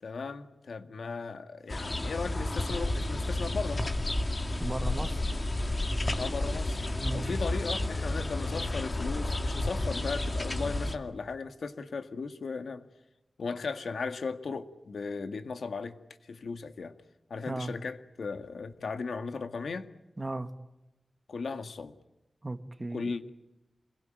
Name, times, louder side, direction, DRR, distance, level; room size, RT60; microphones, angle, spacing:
voice 1, 0.0-3.8 6.2-6.9 7.1-12.9 13.4-16.0 16.2-17.0 17.3-19.9 21.3-22.0 22.9-23.3, left 4 dB, 85° left, 1.8 m, -36 dB
sound 1, 1.7-10.9, left 2 dB, 30° left, 2.2 m, -31 dB
voice 2, 4.6-5.2 7.0-7.3 17.5-17.7 20.2-20.5 22.4-23.1, right 2 dB, 20° right, 1.7 m, -36 dB
27.5 x 22.0 x 9.1 m
wide cardioid pair, 125°, 0 cm